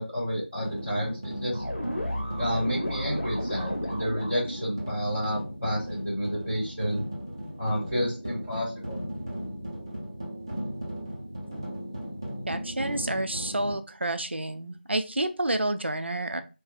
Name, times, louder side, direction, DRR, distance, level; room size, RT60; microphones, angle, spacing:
voice 1, 0.0-1.6 2.3-7.0 7.6-9.0, equal, 5° right, -14 dB, 1.5 m, -30 dB
sound 1, 0.6-13.7, equal, 20° right, 0.7 m, -37 dB
sound 2, 1.5-4.7, equal, 55° left, 1.7 m, -33 dB
voice 2, 12.5-16.4, right 1 dB, 70° right, 8 dB, 0.5 m, -29 dB
5.4 x 2.3 x 2.4 m, 0.31 s
figure-of-eight pair, 175°, 6 cm